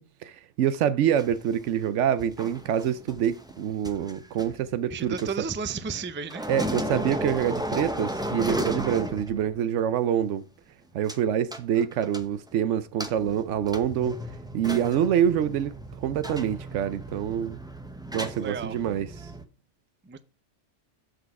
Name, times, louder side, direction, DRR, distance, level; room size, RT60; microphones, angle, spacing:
voice 1, 0.0-5.3 6.5-10.4 10.9-14.2 14.5-17.6 18.1-19.3, right 9 dB, 85° right, 0.9 m, -26 dB
sound 1, 1.2-6.0 6.3-9.7 9.9-10.0 11.1-11.2 11.5-12.5 13.0-19.5, equal, 5° right, 0.8 m, -35 dB
voice 2, 4.9-6.5 18.4-18.8 20.1-20.2, right 5 dB, 20° right, 0.3 m, -33 dB
8.0 x 6.2 x 4.7 m
omnidirectional pair, 1.2 m